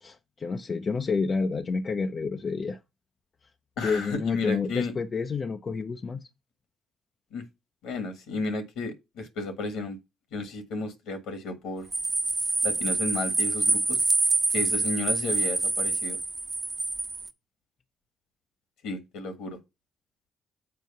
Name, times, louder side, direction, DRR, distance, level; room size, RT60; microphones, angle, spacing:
voice 1, 0.0-2.8 3.8-6.3, left 4 dB, 45° left, 0.6 m, -29 dB
voice 2, 3.8-4.9 7.3-7.4 7.8-10.0 10.3-11.9 12.6-14.0 14.5-16.2 18.8-19.6, left 3 dB, 70° left, 1.7 m, -33 dB
sound 1, 11.9-17.3, right 3 dB, 30° right, 1.1 m, -26 dB
7.7 x 4.5 x 5.5 m
hypercardioid pair, 45°, 0 cm